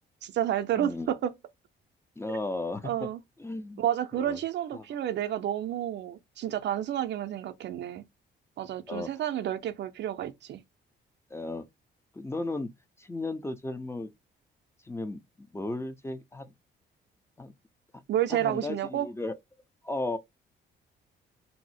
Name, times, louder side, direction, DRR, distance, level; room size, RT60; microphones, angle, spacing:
voice 1, 0.2-1.3 2.3-2.4 2.8-3.2 3.8-8.0 8.6-10.6 18.1-19.1, right 11 dB, 60° right, 0.5 m, -30 dB
voice 2, 0.8-1.1 2.2-3.1 3.4-3.8 4.1-4.4 4.7-4.9 8.9-9.1 11.3-11.7 12.1-12.7 13.0-14.1 14.8-16.5 17.4-17.5 18.3-19.4 19.8-20.2, left 2 dB, 15° left, 0.4 m, -35 dB
2.7 x 2.0 x 4.0 m
cardioid pair, 90°, 20 cm